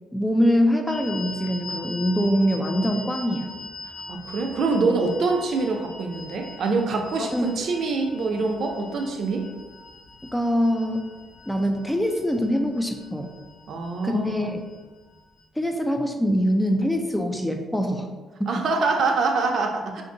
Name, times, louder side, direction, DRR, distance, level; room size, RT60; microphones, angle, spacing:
voice 1, 0.1-3.5 7.2-7.5 10.3-11.1 11.5-13.3 14.0-14.6 15.6-18.1 18.4-18.6, equal, 10° left, 4 dB, 0.4 m, -23 dB
sound 1, 0.9-15.4, left 2 dB, 75° left, 0.5 m, -42 dB
voice 2, 4.1-9.5 13.7-14.5 18.5-20.0, right 3 dB, 65° right, 3 dB, 0.5 m, -25 dB
2.6 x 2.6 x 3.8 m, 1.2 s
cardioid pair, 90°, 0 cm